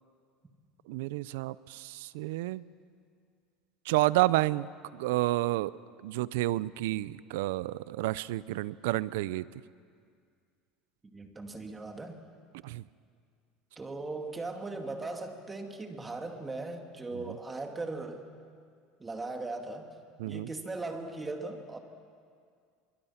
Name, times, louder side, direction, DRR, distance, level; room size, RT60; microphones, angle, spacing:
voice 1, 0.9-2.6 3.9-4.7 4.9-5.7 6.0-9.5 12.6-12.8 17.1-17.4 20.2-20.5, right 17 dB, 80° right, 19 dB, 0.5 m, -30 dB
voice 2, 11.1-12.2 13.8-18.3 19.0-19.9 20.2-21.8, right 3 dB, 15° right, 4 dB, 2.4 m, -38 dB
25.0 x 23.5 x 5.9 m, 2.2 s
supercardioid pair, 115°, 0 cm